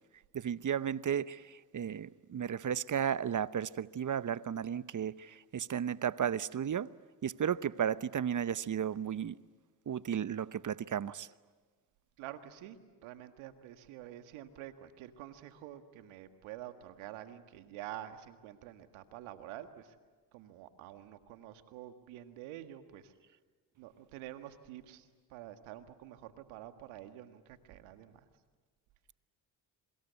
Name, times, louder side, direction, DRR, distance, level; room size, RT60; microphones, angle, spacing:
voice 1, 0.3-6.9 7.2-9.4 9.9-11.3, right 8 dB, 40° right, 0.8 m, -34 dB
voice 2, 12.2-20.0 20.3-23.1 23.8-28.3, right 12 dB, 85° right, 1.8 m, -48 dB
27.0 x 24.0 x 8.2 m
hypercardioid pair, 50°, 48 cm